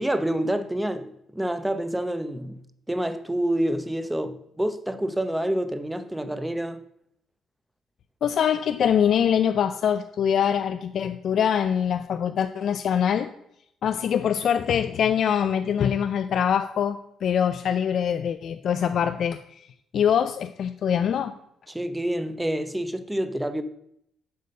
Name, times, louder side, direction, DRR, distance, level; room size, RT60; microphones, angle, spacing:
voice 1, 0.0-2.6 2.9-6.8 21.7-23.6, right 1 dB, 10° right, 0.8 m, -27 dB
voice 2, 8.2-13.3 13.8-19.7 19.9-21.4, left 8 dB, 65° left, 0.4 m, -24 dB
7.8 x 5.1 x 6.7 m
cardioid pair, 90°, 0 cm